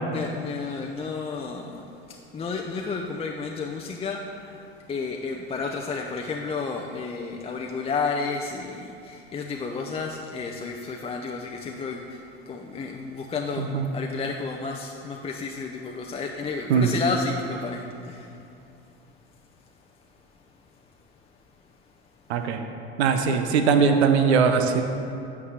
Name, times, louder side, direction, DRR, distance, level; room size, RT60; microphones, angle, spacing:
voice 1, 0.1-18.4, left 4 dB, 20° left, 1 dB, 0.5 m, -32 dB
voice 2, 22.3-22.6 23.0-24.8, right 6 dB, 85° right, 7 dB, 0.7 m, -20 dB
8.4 x 4.8 x 7.1 m, 2.6 s
hypercardioid pair, 95°, 32 cm